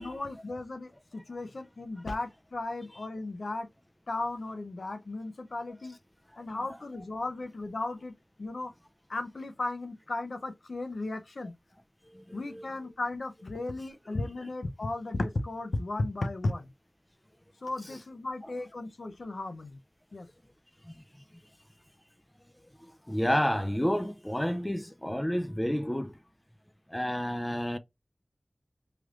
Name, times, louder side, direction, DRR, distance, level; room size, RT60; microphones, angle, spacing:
voice 1, 0.0-3.7 4.1-6.0 6.4-8.1 8.4-8.7 9.1-11.5 12.3-16.7 17.6-19.8 20.1-20.3, left 2 dB, 85° left, 0.5 m, -35 dB
voice 2, 12.0-12.7 17.8-18.0 18.4-18.5 20.8-21.0 21.3-21.4 22.8-26.2 26.9-27.8, equal, 15° left, 0.4 m, -31 dB
3.2 x 3.0 x 2.4 m
wide cardioid pair, 45°, 0 cm